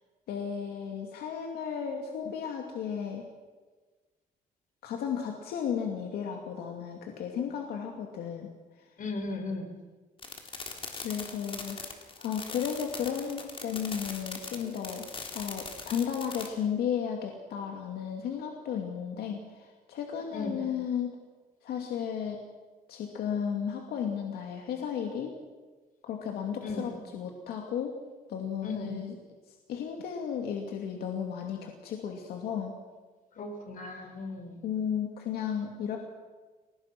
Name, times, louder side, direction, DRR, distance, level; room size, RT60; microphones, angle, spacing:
voice 1, 0.3-3.2 4.8-8.5 10.6-11.8 12.2-15.1 15.3-21.1 21.6-22.4 22.9-25.3 26.0-27.9 28.3-29.1 29.7-32.7 33.9-34.1 34.6-36.0, left 8 dB, 90° left, 2 dB, 2.5 m, -34 dB
voice 2, 9.0-9.7 20.3-20.6 26.6-26.9 28.6-28.9 33.4-34.6, left 3 dB, 60° left, 4 dB, 5.5 m, -36 dB
sound 1, 10.2-16.5, left 4 dB, 35° left, 3.6 m, -41 dB
29.5 x 18.5 x 6.1 m, 1.3 s
cardioid pair, 110°, 16 cm